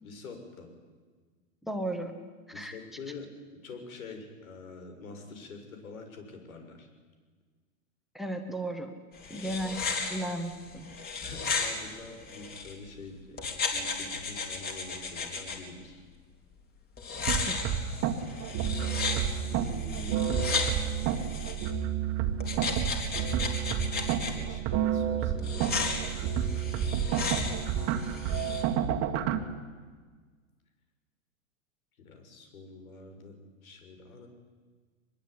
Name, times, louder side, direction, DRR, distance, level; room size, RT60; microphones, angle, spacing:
voice 1, 0.0-0.7 2.5-6.9 9.3-9.5 11.2-16.0 19.4-21.0 24.2-26.7 32.0-34.3, left 3 dB, 85° left, 5 dB, 7.0 m, -46 dB
voice 2, 1.6-2.1 2.5-2.8 8.2-8.9 9.3-10.9 17.4-17.6, right 1 dB, ahead, 7 dB, 1.6 m, -35 dB
sound 1, 9.1-12.7 13.4-15.6 17.0-21.7 22.4-24.3 25.4-28.6, left 4 dB, 25° left, 4.0 m, -35 dB
sound 2, 17.3-29.4, right 9 dB, 35° right, 1.9 m, -30 dB
24.0 x 21.5 x 9.9 m, 1.5 s
supercardioid pair, 145°, 41 cm